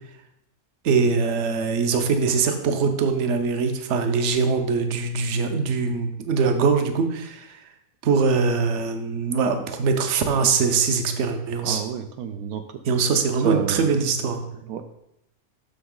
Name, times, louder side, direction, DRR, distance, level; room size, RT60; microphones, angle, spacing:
voice 1, 0.8-7.6 8.0-11.8 12.8-14.4, right 5 dB, 60° right, 6 dB, 1.1 m, -22 dB
voice 2, 11.6-12.6 13.4-14.0 14.7-14.8, right 8 dB, 80° right, 7 dB, 1.0 m, -29 dB
7.0 x 6.2 x 3.7 m, 0.81 s
omnidirectional pair, 1.5 m